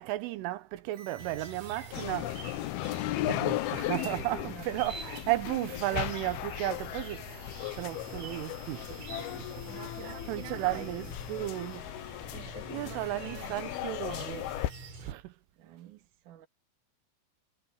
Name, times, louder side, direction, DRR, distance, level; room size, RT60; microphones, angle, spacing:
voice 1, 0.0-2.4 3.3-9.5 10.0-11.9 12.7-14.5 15.0-15.3, right 17 dB, 90° right, 3.6 m, -34 dB
sound 1, 0.9-14.9, right 8 dB, 65° right, 4.4 m, -57 dB
Chirp tweet, 1.2-15.1, right 3 dB, 35° right, 6.8 m, -48 dB
sound 2, 1.9-14.7, left 15 dB, 80° left, 2.2 m, -36 dB
voice 2, 4.0-4.7 9.7-11.1 12.3-13.6 15.6-16.5, right 12 dB, 50° right, 3.0 m, -48 dB
omnidirectional pair, 5.5 m